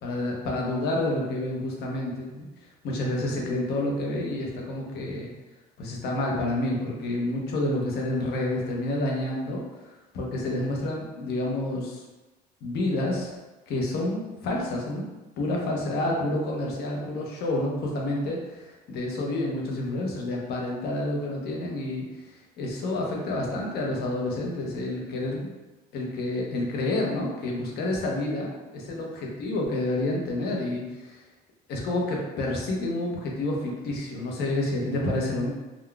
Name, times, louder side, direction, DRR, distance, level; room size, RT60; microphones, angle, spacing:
voice 1, 0.0-2.5 2.8-5.3 5.8-12.0 12.6-13.3 13.7-15.0 15.4-25.5 25.9-31.2 31.7-35.5, left 1 dB, 70° left, -1 dB, 0.8 m, -29 dB
3.7 x 2.2 x 2.3 m, 1.1 s
cardioid pair, 110°, 17 cm